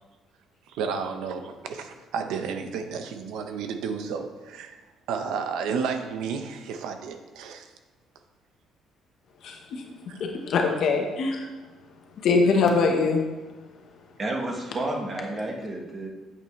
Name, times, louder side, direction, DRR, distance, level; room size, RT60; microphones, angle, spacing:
voice 1, 0.7-4.8 5.1-7.7 10.1-10.2, right 6 dB, 90° right, 7 dB, 0.9 m, -32 dB
voice 2, 9.4-9.8 10.2-11.4 12.2-13.2, left 4 dB, 55° left, 2 dB, 1.1 m, -23 dB
voice 3, 14.2-16.1, right 2 dB, 25° right, 0 dB, 1.3 m, -31 dB
8.9 x 8.1 x 3.2 m, 1.2 s
cardioid pair, 165°, 0 cm